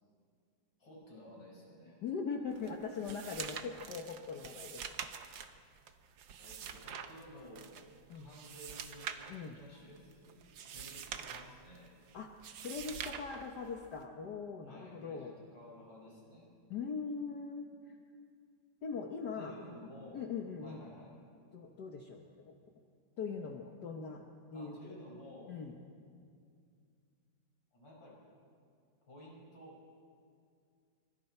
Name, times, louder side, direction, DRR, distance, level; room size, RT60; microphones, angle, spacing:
voice 1, 0.8-2.0 6.4-7.7 8.1-9.1 9.5-11.9 14.6-16.5 19.3-20.3 20.6-21.1 24.5-25.6 27.7-28.2 29.0-29.8, equal, 75° left, -4 dB, 6.2 m, -53 dB
voice 2, 2.0-4.8 8.1-8.3 9.3-9.6 12.1-12.3 12.6-15.3 16.7-18.0 18.8-19.5 20.1-20.8 21.5-22.5 23.2-24.2 24.5-25.0 25.5-25.7, left 5 dB, 60° left, 2 dB, 1.7 m, -41 dB
sound 1, 2.5-14.1, right 8 dB, 75° right, 1.7 m, -46 dB
26.0 x 25.0 x 4.4 m, 2.3 s
omnidirectional pair, 2.1 m